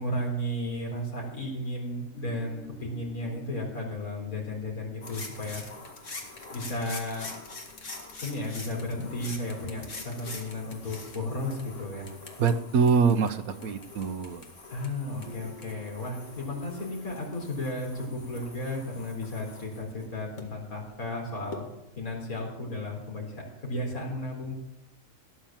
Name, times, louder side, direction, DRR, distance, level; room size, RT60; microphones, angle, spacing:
voice 1, 0.0-5.6 6.5-7.3 8.2-12.1 14.7-21.6 21.9-24.5, left 1 dB, 80° left, -2 dB, 4.4 m, -34 dB
sound 1, 2.1-21.1, equal, 20° right, 7.9 m, -53 dB
sound 2, 5.0-20.4 21.5-21.6, left 3 dB, 60° left, 2.4 m, -44 dB
voice 2, 12.4-14.4, right 5 dB, 80° right, 10 dB, 1.4 m, -24 dB
17.0 x 10.0 x 7.4 m, 0.88 s
omnidirectional pair, 1.5 m